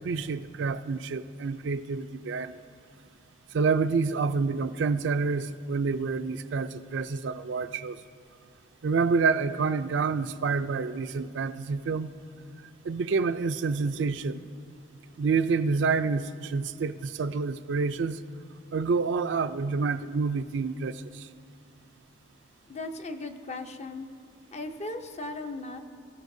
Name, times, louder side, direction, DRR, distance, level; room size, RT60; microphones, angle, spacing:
voice 1, 0.0-2.5 3.5-8.0 8.8-12.1 12.8-14.4 15.2-18.2 18.7-21.3, right 4 dB, 70° right, 11 dB, 0.4 m, -28 dB
voice 2, 22.7-24.1 24.5-25.8, left 2 dB, 35° left, 7 dB, 0.6 m, -37 dB
22.0 x 14.0 x 2.7 m, 2.4 s
head